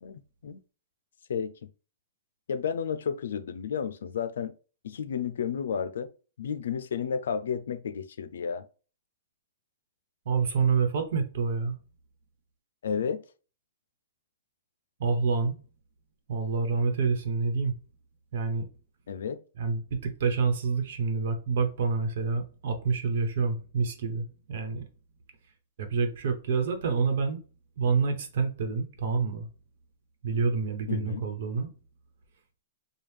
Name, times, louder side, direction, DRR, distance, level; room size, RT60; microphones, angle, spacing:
voice 1, 0.0-0.6 1.3-1.7 2.5-4.5 4.8-6.1 6.4-8.7 12.8-13.2 19.1-19.4 30.9-31.2, left 7 dB, 85° left, 0.5 m, -32 dB
voice 2, 10.2-11.8 15.0-15.6 16.3-17.7 18.3-18.7 19.6-24.8 25.8-27.4 27.8-29.5 30.2-31.7, right 5 dB, 65° right, 1.1 m, -27 dB
4.7 x 2.3 x 3.4 m
hypercardioid pair, 150°, 0 cm